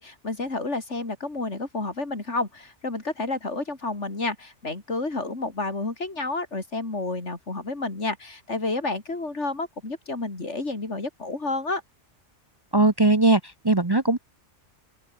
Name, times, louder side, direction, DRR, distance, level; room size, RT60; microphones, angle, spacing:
voice 1, 0.0-11.8, left 2 dB, 75° left, 4.0 m, -30 dB
voice 2, 12.7-14.2, right 2 dB, 20° right, 1.0 m, -20 dB
open air
omnidirectional pair, 1.2 m